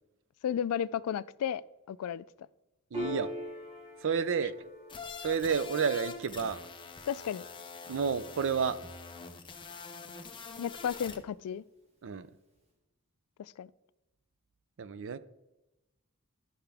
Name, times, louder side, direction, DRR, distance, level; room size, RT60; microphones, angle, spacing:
voice 1, 0.4-1.6 1.9-2.2 7.1-7.5 10.6-11.6 13.4-13.7, left 8 dB, 90° left, 0.3 m, -33 dB
Piano, 2.9-9.9, left 1 dB, 30° right, 2.0 m, -44 dB
voice 2, 2.9-3.3 4.0-4.7 5.2-6.6 7.9-8.8 12.0-12.3 14.8-15.2, right 6 dB, 60° right, 0.5 m, -31 dB
sound 1, 4.9-11.2, left 5 dB, 20° left, 0.7 m, -45 dB
12.0 x 5.7 x 3.4 m
head